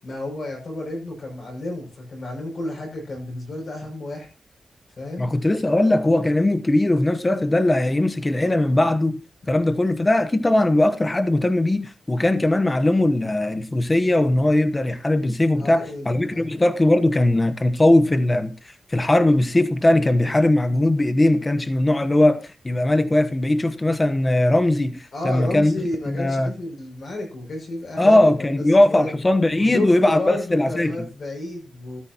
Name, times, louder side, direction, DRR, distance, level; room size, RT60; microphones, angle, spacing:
voice 1, 0.0-4.3 5.0-5.4 15.5-16.5 25.1-28.6 28.9-29.1 29.6-32.0, left 2 dB, 50° left, 6.4 m, -32 dB
voice 2, 5.2-9.2 9.5-18.5 18.9-25.7 26.1-26.5 28.0-30.9, left 1 dB, 15° left, 1.1 m, -19 dB
14.0 x 14.0 x 3.0 m
wide cardioid pair, 180°, 0 cm